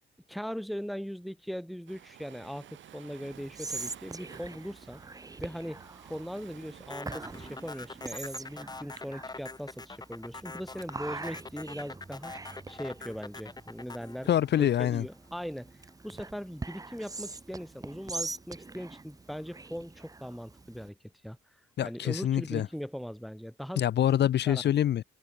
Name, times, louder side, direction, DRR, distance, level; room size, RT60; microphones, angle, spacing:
voice 1, 0.3-5.0 5.4-14.3 14.6-15.7 16.0-21.0 21.2-21.4 21.8-23.8 24.4-24.6, equal, ahead, 1.6 m, -40 dB
Waves surf, 1.9-8.6, right 11 dB, 75° right, 5.3 m, -53 dB
Whispering, 3.3-20.9, right 3 dB, 20° right, 1.0 m, -44 dB
sound 1, 6.9-15.3, left 3 dB, 20° left, 1.9 m, -44 dB
voice 2, 14.3-15.0 21.8-22.7 23.8-25.0, left 11 dB, 60° left, 0.8 m, -25 dB
cardioid pair, 90°, 20 cm